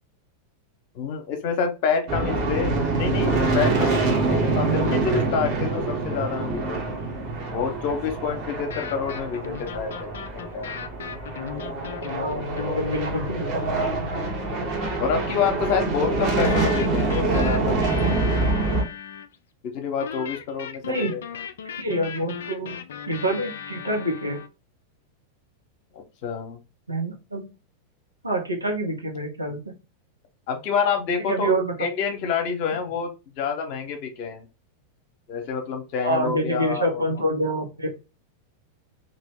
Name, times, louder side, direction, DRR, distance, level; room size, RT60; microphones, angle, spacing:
voice 1, 0.9-4.0 4.3-7.0 7.5-10.7 14.3-14.7 15.0-17.8 18.0-18.2 19.6-21.2 25.9-26.6 29.5-29.6 30.5-34.5 35.3-37.0, left 6 dB, 45° left, 5 dB, 0.8 m, -28 dB
sound 1, 2.1-18.8, right 3 dB, 40° right, 1.1 m, -25 dB
sound 2, 8.6-14.4 16.4-19.3 20.0-24.5, left 8 dB, 60° left, 0.3 m, -36 dB
voice 2, 12.2-13.8 20.8-21.2 21.8-22.8 23.1-24.4 26.9-27.5 28.2-29.8 31.3-31.7 36.0-38.0, right 1 dB, 80° right, 0 dB, 1.0 m, -27 dB
2.9 x 2.5 x 3.5 m, 0.29 s
figure-of-eight pair, 90°, 0 cm